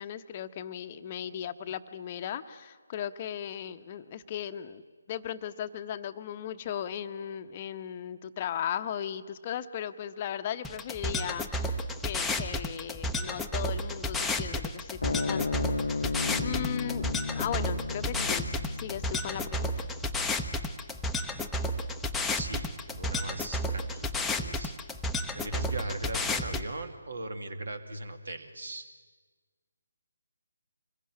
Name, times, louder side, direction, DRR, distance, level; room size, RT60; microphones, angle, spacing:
voice 1, 0.0-4.8 5.1-19.8, left 9 dB, 30° left, 9 dB, 1.0 m, -37 dB
metal factory, 10.6-26.6, left 1 dB, 5° left, 0.9 m, -32 dB
sound 1, 15.0-21.7, left 4 dB, 55° left, 0.9 m, -35 dB
voice 2, 22.4-24.7 25.3-28.9, right 2 dB, 60° right, 9 dB, 2.4 m, -39 dB
25.5 x 21.5 x 9.8 m, 1.5 s
figure-of-eight pair, 145°, 0 cm